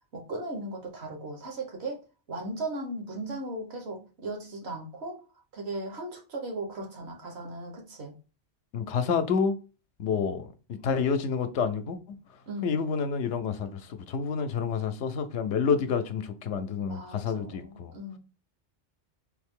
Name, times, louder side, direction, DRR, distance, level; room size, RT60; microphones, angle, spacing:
voice 1, 0.1-5.2 5.5-8.2 12.5-12.8 16.8-18.2, right 2 dB, 65° right, 1.2 m, -37 dB
voice 2, 8.7-9.6 10.0-12.0 12.6-17.9, left 6 dB, 80° left, 0.9 m, -29 dB
3.6 x 2.7 x 3.6 m
omnidirectional pair, 1.2 m